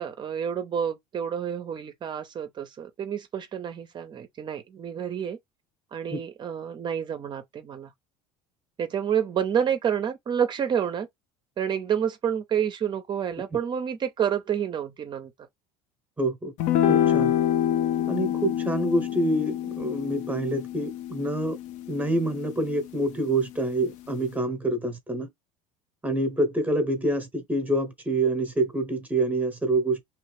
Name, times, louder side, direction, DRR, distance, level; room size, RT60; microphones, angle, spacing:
voice 1, 0.0-5.4 5.9-7.9 8.8-11.1 11.6-15.3, right 8 dB, 35° right, 0.5 m, -29 dB
voice 2, 16.2-16.5 16.8-17.3 18.1-21.6 21.9-25.3 26.0-30.0, right 1 dB, 10° right, 0.9 m, -26 dB
sound 1, 16.6-23.1, left 10 dB, 60° left, 0.5 m, -27 dB
2.9 x 2.4 x 3.3 m
supercardioid pair, 115°, 14 cm